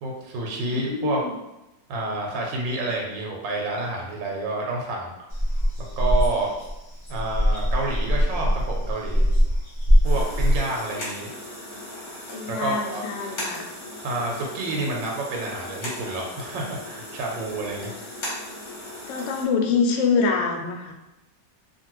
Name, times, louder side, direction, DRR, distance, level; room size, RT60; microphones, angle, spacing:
voice 1, 0.0-1.2 1.9-5.1 6.0-6.5 7.1-9.2 10.0-11.3 12.5-13.0 14.0-17.9, right 2 dB, 90° right, -1 dB, 1.3 m, -29 dB
voice 2, 0.7-1.3 12.3-13.7 19.1-20.9, left 5 dB, 80° left, 2 dB, 1.2 m, -25 dB
sound 1, 5.3-10.6, equal, 20° left, 0.4 m, -21 dB
sound 2, 10.0-19.4, left 1 dB, 50° left, 1.1 m, -37 dB
2.8 x 2.5 x 2.9 m, 0.95 s
omnidirectional pair, 2.0 m